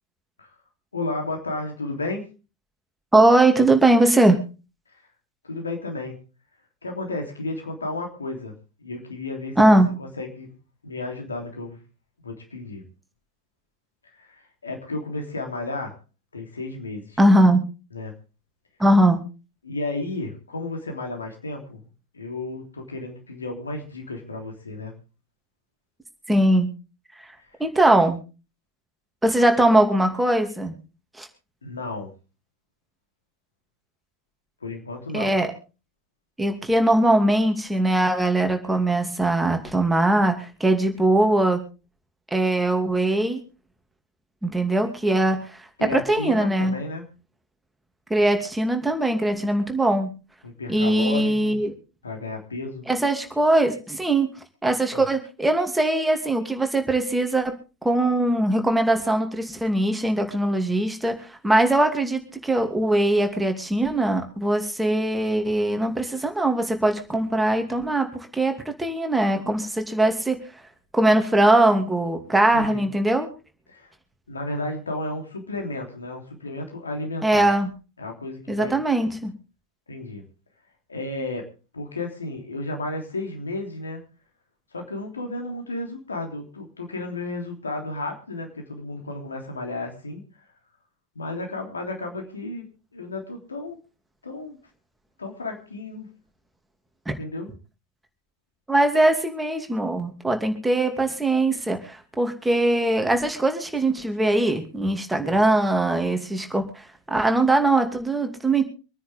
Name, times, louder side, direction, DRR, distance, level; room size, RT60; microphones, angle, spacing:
voice 1, 0.9-2.3 5.4-6.2 6.8-8.5 8.8-10.5 10.8-11.8 12.2-12.8 14.2-15.9 16.3-17.2 17.9-18.1 19.6-21.9 22.1-24.9 31.6-32.1 34.6-35.3 45.8-47.1 50.4-51.6 52.0-52.9 54.9-55.0 72.5-72.8 73.7-73.9 74.3-77.5 78.0-78.7 79.9-80.2 80.9-81.5 81.7-84.0 84.7-90.2 91.1-92.7 92.9-93.8 94.2-94.6 95.2-96.1 97.2-97.5 105.2-105.4, left 2 dB, 80° left, 3 dB, 3.3 m, -33 dB
voice 2, 3.1-4.4 9.6-9.9 17.2-17.6 18.8-19.2 26.3-26.7 27.6-28.2 29.2-30.8 31.2-31.3 35.1-35.5 36.4-41.6 42.3-43.4 44.4-46.7 48.1-50.1 50.7-51.7 52.9-54.3 54.6-57.5 57.8-70.4 70.9-73.3 77.2-77.7 78.5-79.3 97.1-97.2 98.7-108.6, right 1 dB, 5° right, 5 dB, 2.7 m, -21 dB
26.0 x 10.0 x 3.6 m, 0.33 s
figure-of-eight pair, 80°, 0 cm